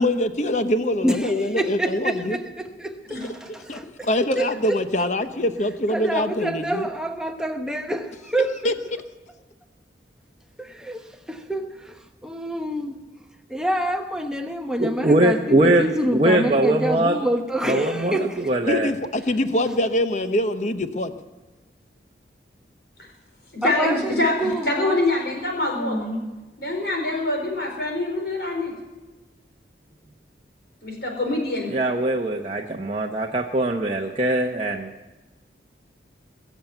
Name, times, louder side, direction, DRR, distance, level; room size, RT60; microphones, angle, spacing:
voice 1, 0.0-2.4 3.4-6.9 8.6-8.7 18.7-21.1, left 1 dB, 40° left, 10 dB, 0.9 m, -24 dB
voice 2, 1.0-4.1 4.4-4.8 5.9-8.7 10.6-12.0 12.2-12.9 13.5-18.4 23.6-25.0 25.8-26.3, right 1 dB, 5° right, 4 dB, 1.0 m, -27 dB
voice 3, 14.8-17.2 17.6-18.9 31.7-34.9, right 1 dB, 35° right, 1 dB, 0.9 m, -21 dB
voice 4, 23.5-26.0 26.6-28.7 30.8-31.8, left 2 dB, 60° left, 1 dB, 4.5 m, -25 dB
21.5 x 7.3 x 9.0 m, 1.2 s
head